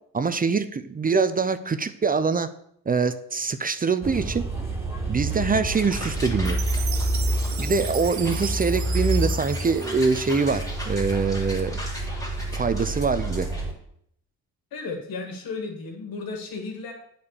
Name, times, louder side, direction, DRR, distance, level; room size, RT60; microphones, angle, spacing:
voice 1, 0.1-2.5 2.9-4.4 5.1-6.6 7.6-11.8 12.5-13.5, right 4 dB, 25° right, 12 dB, 0.6 m, -24 dB
sound 1, 4.0-13.7, right 1 dB, 5° right, 3.0 m, -28 dB
sound 2, 5.7-13.6, equal, 10° left, 2.6 m, -39 dB
Chime, 6.5-10.8, right 9 dB, 55° right, 0.9 m, -37 dB
voice 2, 14.7-16.9, left 4 dB, 85° left, 3 dB, 2.2 m, -34 dB
8.6 x 4.4 x 6.9 m, 0.69 s
cardioid pair, 95°, 35 cm